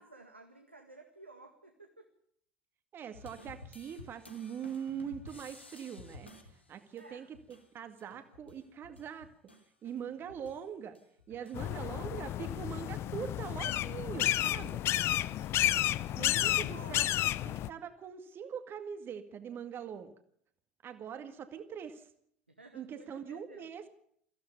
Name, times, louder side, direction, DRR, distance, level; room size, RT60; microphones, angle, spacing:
voice 1, 0.0-2.0 6.5-6.6 7.0-7.3 11.4-12.4 14.6-15.5 15.8-15.9 16.7-17.6 22.6-23.7, right 2 dB, 85° right, 4 dB, 1.9 m, -55 dB
voice 2, 2.9-6.3 6.7-7.4 7.7-9.3 9.8-11.0 11.3-14.8 16.2-17.1 17.4-20.1 20.8-22.1 22.7-23.8, right 8 dB, 40° right, 9 dB, 2.1 m, -42 dB
sound 1, 3.1-10.7 10.9-15.6, left 2 dB, 85° left, 2.7 m, -55 dB
sound 2, 11.5-17.7, left 13 dB, 45° left, 0.7 m, -31 dB
23.5 x 16.0 x 7.0 m, 0.67 s
figure-of-eight pair, 65°, 6 cm